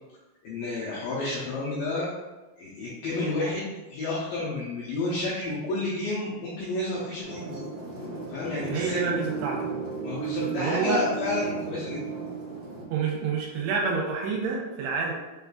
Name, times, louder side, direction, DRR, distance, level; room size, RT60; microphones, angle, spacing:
voice 1, 0.4-2.1 2.6-7.6 8.3-9.1 10.0-12.0, left 2 dB, 85° left, -6 dB, 2.0 m, -30 dB
sound 1, 7.2-12.8, right 5 dB, 60° right, 1.7 m, -34 dB
voice 2, 8.7-9.6 10.4-11.0 12.9-15.1, right 5 dB, 85° right, -1 dB, 2.7 m, -28 dB
6.6 x 2.5 x 2.3 m, 1.1 s
omnidirectional pair, 4.8 m